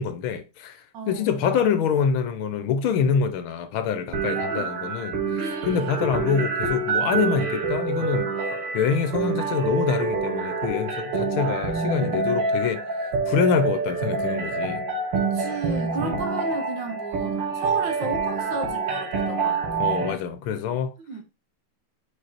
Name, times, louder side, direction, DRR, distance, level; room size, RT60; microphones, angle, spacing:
voice 1, 0.0-8.3 8.7-12.8 13.3-14.8 16.0-16.2 19.8-20.9, left 6 dB, 75° left, 1.5 m, -25 dB
voice 2, 0.9-1.3 4.4-4.9 5.4-6.1 15.1-19.6 21.1-21.2, right 4 dB, 60° right, 1.6 m, -33 dB
sound 1, 4.1-20.1, right 4 dB, 85° right, 2.1 m, -27 dB
5.1 x 4.6 x 4.3 m
omnidirectional pair, 2.4 m